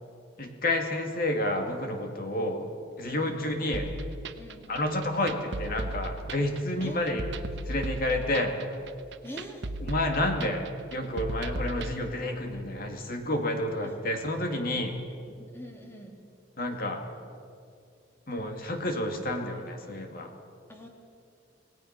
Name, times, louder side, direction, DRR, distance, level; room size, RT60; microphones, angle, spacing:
voice 1, 0.4-2.7 3.0-3.9 4.7-7.3 7.7-8.6 9.8-10.6 10.9-14.9 16.6-17.0 18.3-20.3, left 1 dB, 50° left, 4 dB, 2.4 m, -30 dB
voice 2, 2.3-2.7 3.1-3.4 4.4-4.7 6.8-7.0 9.2-9.6 13.8-14.0 15.3-16.2 20.7-20.9, equal, 15° left, 2 dB, 2.5 m, -44 dB
sound 1, 3.7-11.9, right 1 dB, 65° right, 1.0 m, -36 dB
28.0 x 17.5 x 5.9 m, 2.4 s
head